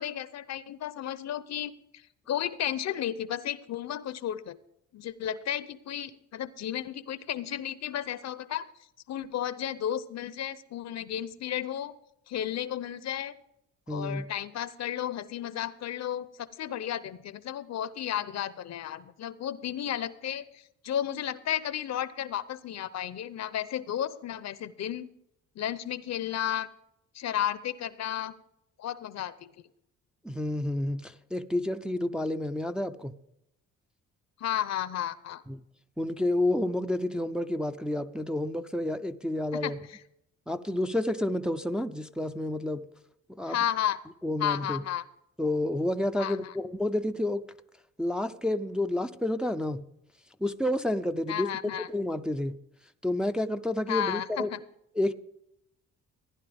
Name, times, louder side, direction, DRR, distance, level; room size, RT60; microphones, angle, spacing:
voice 1, 0.0-4.6 4.9-8.7 9.1-11.9 12.3-13.3 13.9-20.4 20.8-25.1 25.6-26.7 27.1-28.3 28.8-29.5 34.4-35.4 39.6-40.0 43.4-44.0 44.4-45.0 46.2-46.5 51.3-51.9 53.9-54.6, left 10 dB, 60° left, 16 dB, 0.7 m, -33 dB
voice 2, 13.9-14.2 30.2-33.1 35.5-35.6 36.0-39.8 40.5-42.8 43.3-43.6 44.2-44.8 45.4-47.5 48.0-49.9 50.4-51.5 51.9-52.5 53.0-54.5 55.0-55.1, left 1 dB, 5° right, 6 dB, 0.5 m, -30 dB
15.0 x 10.5 x 3.5 m, 0.79 s
cardioid pair, 90°, 30 cm